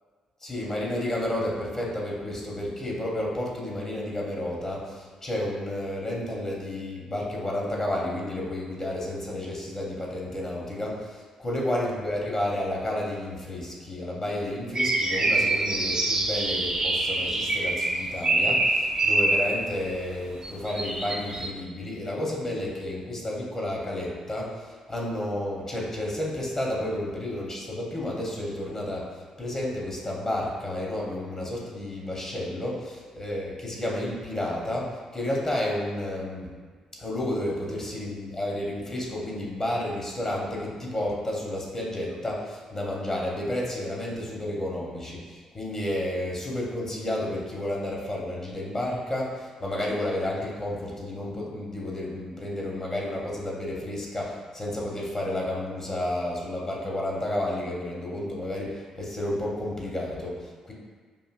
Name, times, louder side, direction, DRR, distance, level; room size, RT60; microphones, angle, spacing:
voice 1, 0.4-29.1 29.4-36.5 37.0-60.7, left 1 dB, 30° left, -3 dB, 1.0 m, -31 dB
sound 1, 14.7-19.6 20.4-21.5, right 2 dB, 35° right, 0.6 m, -25 dB
4.9 x 2.6 x 2.5 m, 1.6 s
figure-of-eight pair, 40°, 2 cm